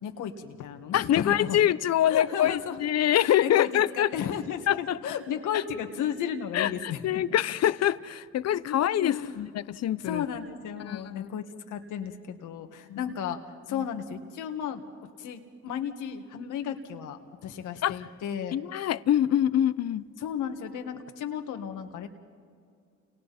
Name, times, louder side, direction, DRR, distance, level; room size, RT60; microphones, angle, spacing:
voice 1, 0.0-1.6 2.1-2.8 3.1-7.2 8.5-9.5 10.0-11.4 11.7-14.8 15.2-18.6 20.2-22.1, left 8 dB, 85° left, 5 dB, 1.9 m, -34 dB
voice 2, 0.9-4.1 4.7-5.0 5.5-5.6 6.5-10.2 10.9-11.3 12.9-13.0 13.7-13.9 17.8-18.0 18.5-20.0, left 11 dB, 55° left, 16 dB, 0.7 m, -25 dB
30.0 x 29.5 x 4.3 m, 2.2 s
cardioid pair, 90°, 30 cm